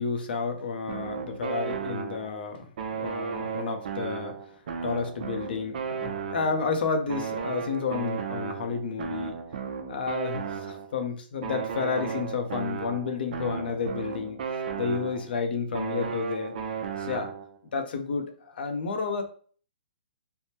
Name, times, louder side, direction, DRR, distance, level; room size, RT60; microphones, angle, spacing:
voice 1, 0.0-4.4 4.8-9.4 9.9-16.6 17.0-17.3 17.7-19.2, left 5 dB, 70° left, 5 dB, 0.6 m, -31 dB
sound 1, 0.9-2.4 2.8-6.7 7.1-11.0 11.4-15.4 15.7-17.6, right 6 dB, 60° right, 0.5 m, -34 dB
3.4 x 2.1 x 2.8 m, 0.44 s
hypercardioid pair, 150°, 6 cm